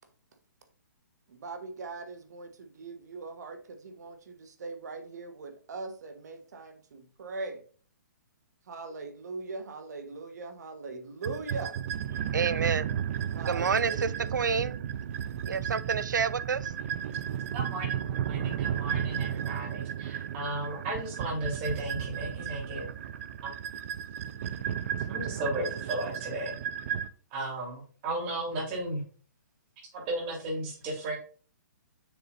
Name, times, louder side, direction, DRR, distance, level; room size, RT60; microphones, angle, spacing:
voice 1, 1.3-7.6 8.7-11.8 13.3-14.3, right 3 dB, 65° right, 1.4 m, -41 dB
sound 1, 11.2-27.1, right 9 dB, 45° right, 0.6 m, -34 dB
voice 2, 12.3-12.9 13.5-14.8 15.1-16.7, right 6 dB, 85° right, 0.5 m, -29 dB
voice 3, 17.5-22.9 23.4-23.5 25.1-26.5 26.9-27.0 27.3-29.0 29.9-31.2, right 1 dB, 30° right, 3.8 m, -35 dB
7.0 x 6.2 x 2.6 m
hypercardioid pair, 145°, 10 cm